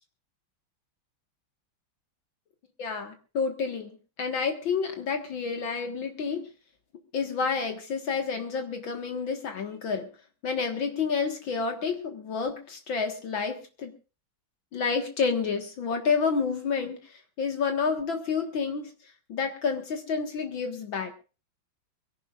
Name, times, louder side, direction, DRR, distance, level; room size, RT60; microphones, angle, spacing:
voice 1, 2.8-3.9 4.2-6.5 7.1-10.1 10.4-13.9 14.7-18.9 19.3-21.1, left 5 dB, 65° left, 5 dB, 2.4 m, -29 dB
24.0 x 16.5 x 2.5 m, 0.33 s
omnidirectional pair, 2.3 m